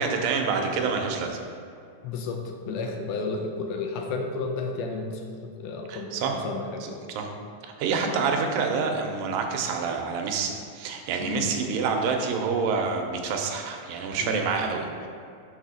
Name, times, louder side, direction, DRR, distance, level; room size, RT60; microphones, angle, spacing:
voice 1, 0.0-1.4 5.9-6.4 6.8-7.3 7.8-15.1, right 5 dB, 85° right, 3 dB, 2.4 m, -27 dB
voice 2, 2.0-5.3 5.6-6.1 6.4-7.0 11.2-11.5 14.2-14.4, left 4 dB, 80° left, 3 dB, 1.9 m, -32 dB
6.1 x 4.0 x 5.0 m, 2.4 s
omnidirectional pair, 4.0 m